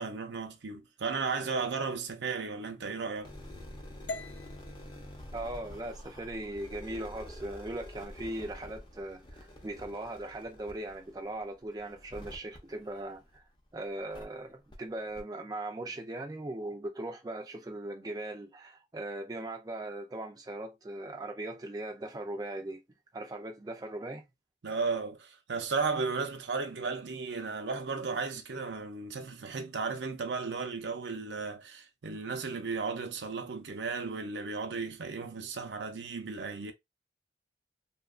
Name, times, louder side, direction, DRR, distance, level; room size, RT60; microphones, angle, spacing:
voice 1, 0.0-3.3 24.6-36.7, right 4 dB, 85° right, 0.6 m, -35 dB
sound 1, 3.2-13.6 14.1-14.2 14.7-14.8 15.1-15.2, left 1 dB, 25° left, 0.6 m, -48 dB
sound 2, 4.1-8.2, left 3 dB, 80° left, 0.4 m, -47 dB
voice 2, 5.3-13.4 13.7-22.8 23.1-24.2, right 1 dB, 20° right, 0.4 m, -39 dB
2.8 x 2.3 x 2.3 m
head